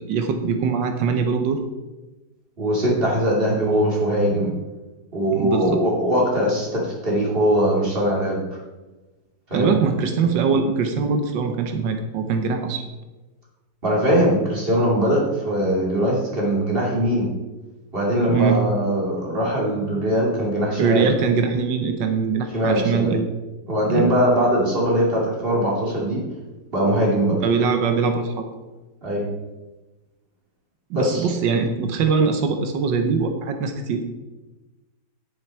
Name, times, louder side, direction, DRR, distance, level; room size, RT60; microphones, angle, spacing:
voice 1, 0.0-1.6 5.3-5.8 9.5-12.8 18.3-18.6 20.8-23.2 23.8-24.1 27.4-28.5 30.9-34.0, right 5 dB, 90° right, 6 dB, 1.6 m, -22 dB
voice 2, 2.6-4.5 5.1-8.4 9.5-9.7 13.8-17.3 17.9-21.1 22.5-23.2 23.7-26.2 26.7-27.3 29.0-29.3 30.9-31.3, equal, 30° right, -3 dB, 3.2 m, -21 dB
10.0 x 9.1 x 4.5 m, 1.1 s
omnidirectional pair, 1.9 m